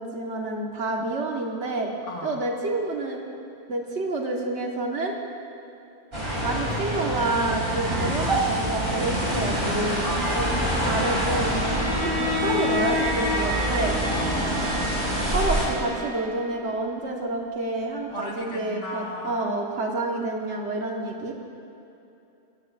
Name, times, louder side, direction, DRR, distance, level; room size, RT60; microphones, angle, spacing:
voice 1, 0.0-1.9 2.2-3.2 3.7-5.1 6.4-14.0 15.3-21.3, right 2 dB, 60° right, 0 dB, 1.8 m, -28 dB
voice 2, 2.1-2.4 10.0-11.0 14.1-15.0 18.1-19.5, left 1 dB, 70° left, -3 dB, 2.4 m, -36 dB
sound 1, 6.1-15.6, right 1 dB, 40° right, 4.0 m, -26 dB
Bowed string instrument, 11.5-16.6, left 2 dB, 80° right, 3.7 m, -30 dB
22.0 x 13.5 x 2.6 m, 2.9 s
omnidirectional pair, 1.3 m